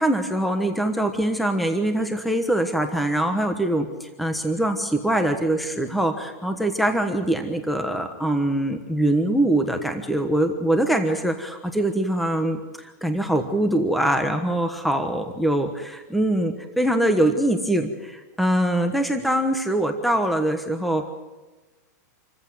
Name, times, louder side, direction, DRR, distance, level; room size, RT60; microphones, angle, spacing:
voice 1, 0.0-21.1, right 1 dB, ahead, 6 dB, 1.2 m, -23 dB
27.5 x 15.0 x 9.5 m, 1.2 s
supercardioid pair, 170°, 9 cm